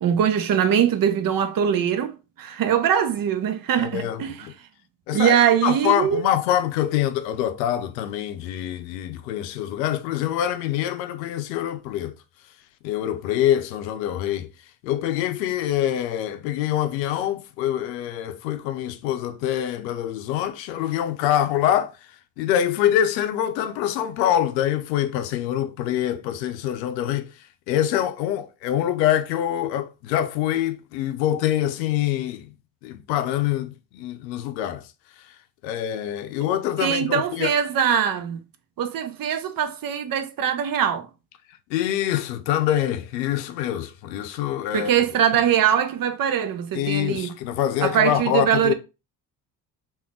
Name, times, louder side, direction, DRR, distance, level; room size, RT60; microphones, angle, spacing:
voice 1, 0.0-4.5 5.1-6.2 36.8-38.4 38.8-41.1 44.7-47.3 47.8-48.7, right 9 dB, 45° right, 0.7 m, -22 dB
voice 2, 3.8-4.5 5.1-12.2 12.8-14.5 14.8-21.9 22.4-27.3 27.7-32.5 32.8-34.8 35.6-37.5 41.7-44.9 46.7-48.7, left 11 dB, 85° left, 0.6 m, -25 dB
3.5 x 2.5 x 3.6 m
hypercardioid pair, 60°, 49 cm